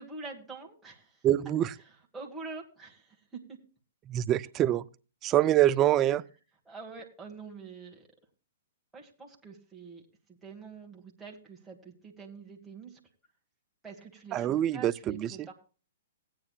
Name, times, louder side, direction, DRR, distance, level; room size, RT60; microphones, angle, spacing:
voice 1, 0.0-1.2 2.1-3.4 6.6-8.1 8.9-10.0 10.3-13.0 13.8-15.5, right 4 dB, 10° right, 1.8 m, -45 dB
voice 2, 1.2-1.7 4.1-4.8 5.2-6.2 14.3-15.5, right 12 dB, 30° right, 0.4 m, -25 dB
17.5 x 9.0 x 2.4 m
hypercardioid pair, 125°, 0 cm